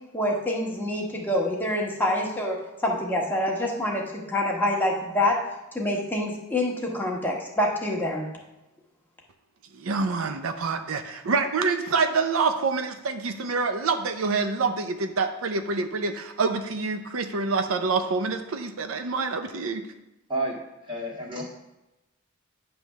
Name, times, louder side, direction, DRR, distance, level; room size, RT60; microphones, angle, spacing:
voice 1, 0.1-2.6 2.8-5.4 5.7-8.3, left 1 dB, 10° left, -2 dB, 1.2 m, -26 dB
voice 2, 9.7-19.9, right 4 dB, 80° right, 7 dB, 0.6 m, -26 dB
voice 3, 20.9-21.4, right 1 dB, 25° right, -2 dB, 1.9 m, -29 dB
9.9 x 3.4 x 6.2 m, 0.97 s
head